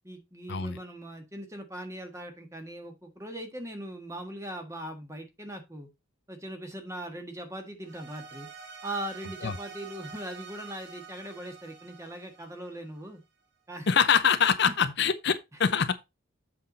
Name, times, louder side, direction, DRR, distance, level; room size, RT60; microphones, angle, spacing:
voice 1, 0.0-5.9 6.3-8.5 8.8-13.2 13.7-13.9, right 1 dB, 15° right, 1.5 m, -40 dB
sound 1, 7.8-13.2, right 6 dB, 55° right, 2.2 m, -47 dB
voice 2, 13.9-16.1, left 7 dB, 50° left, 0.6 m, -24 dB
7.8 x 5.7 x 4.0 m
head